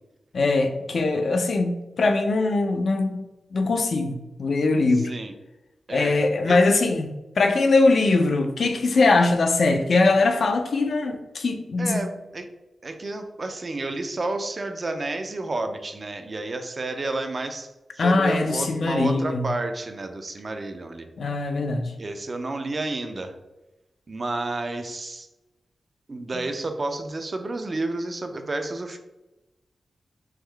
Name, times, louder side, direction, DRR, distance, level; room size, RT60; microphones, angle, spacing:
voice 1, 0.3-3.2 3.5-5.1 5.9-7.1 7.4-12.0 18.0-19.5 21.2-21.9, left 3 dB, 55° left, 0.4 m, -21 dB
voice 2, 4.9-5.3 5.9-6.6 11.8-12.5 12.8-17.7 17.9-21.1 22.0-23.3 24.1-25.3 26.1-29.0, right 2 dB, 30° right, 0.4 m, -31 dB
3.6 x 3.1 x 3.3 m
wide cardioid pair, 155°, 0 cm